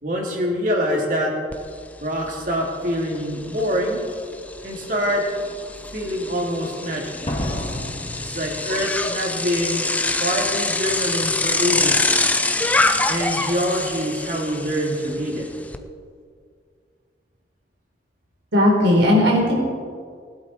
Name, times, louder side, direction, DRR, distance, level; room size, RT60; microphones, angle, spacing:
voice 1, 0.0-1.3 2.0-4.0 4.6-5.2 5.9-7.3 8.2-9.9 10.2-12.1 13.0-15.4, equal, 45° right, -1 dB, 2.8 m, -25 dB
Bicycle, 1.5-1.6 2.0-15.8, left 2 dB, 10° left, 0.6 m, -25 dB
Slam, 4.1-4.2 4.8-5.2 7.3-9.1 9.4-9.5, left 1 dB, 30° left, 2.0 m, -31 dB
voice 2, 18.5-19.5, left 1 dB, 85° right, -1 dB, 4.4 m, -16 dB
19.5 x 11.5 x 4.5 m, 2.1 s
head